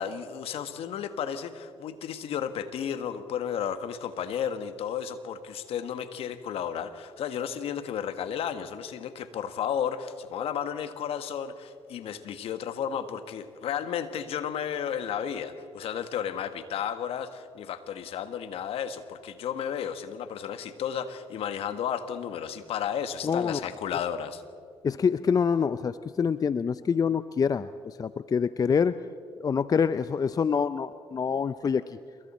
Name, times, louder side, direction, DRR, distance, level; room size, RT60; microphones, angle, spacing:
voice 1, 0.0-24.4, left 8 dB, 65° left, 10 dB, 1.4 m, -33 dB
voice 2, 23.2-23.6 24.8-29.0 29.4-32.0, left 6 dB, 35° left, 15 dB, 0.5 m, -26 dB
27.5 x 22.0 x 4.3 m, 2.2 s
supercardioid pair, 60°, 11 cm